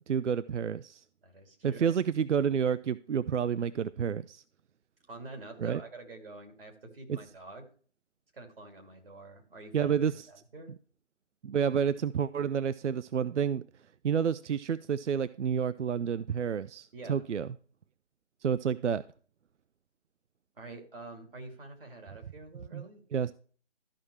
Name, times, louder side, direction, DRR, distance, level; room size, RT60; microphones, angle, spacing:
voice 1, 0.1-1.0 1.6-4.4 5.6-5.8 7.1-7.2 9.7-10.3 11.4-13.6 14.0-17.5 18.4-19.0 22.7-22.9 23.1-23.3, right 7 dB, 70° right, 16 dB, 0.5 m, -29 dB
voice 2, 1.2-1.9 5.1-7.7 8.3-9.9 10.3-10.7 16.9-17.3 20.6-23.0, right 3 dB, 50° right, 2 dB, 2.7 m, -47 dB
13.0 x 5.8 x 3.2 m, 0.42 s
figure-of-eight pair, 160°, 37 cm